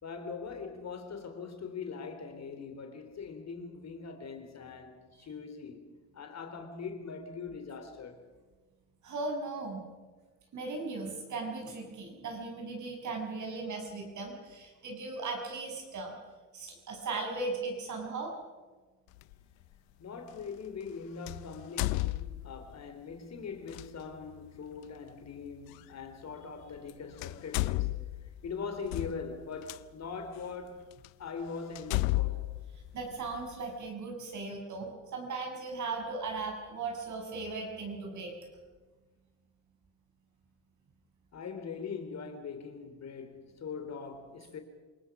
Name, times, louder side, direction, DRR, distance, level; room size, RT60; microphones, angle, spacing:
voice 1, 0.0-8.3 20.0-28.1 28.4-30.9 31.2-32.6 41.3-44.6, left 5 dB, 50° left, 3.5 m, -42 dB
voice 2, 9.0-9.9 10.5-16.2 16.5-18.3 32.9-38.3, right 3 dB, 55° right, 6.9 m, -37 dB
sound 1, 19.2-19.3 21.3-22.7 23.7-23.9 25.7-25.8 26.8-26.9 27.2-29.8 30.5-30.6 31.0-31.1 31.8-33.5, left 20 dB, 85° left, 0.7 m, -33 dB
28.0 x 19.0 x 6.1 m
supercardioid pair, 70°, 35 cm